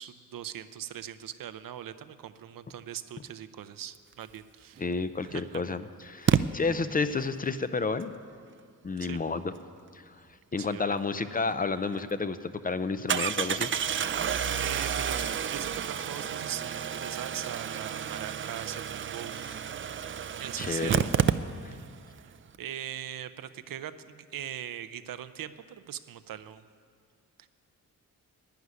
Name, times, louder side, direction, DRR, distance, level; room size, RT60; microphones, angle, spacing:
voice 1, 0.0-4.9 5.2-5.6 9.0-9.2 10.6-10.9 14.6-19.4 20.4-21.1 22.1-22.3 22.6-26.6 27.4-27.5, right 10 dB, 80° right, 12 dB, 0.7 m, -40 dB
voice 2, 4.8-8.1 8.8-9.5 9.9-10.1 10.5-13.7 19.4-19.6 20.6-21.0 21.6-21.7, left 4 dB, 25° left, 12 dB, 0.5 m, -31 dB
Engine starting, 4.8-4.9 6.3-6.4 11.5-11.6 11.9-12.0 13.1-21.9 22.2-22.3 22.5-22.6, right 8 dB, 40° right, 0.4 m, -30 dB
11.5 x 9.5 x 9.6 m, 2.1 s
wide cardioid pair, 125°, 33 cm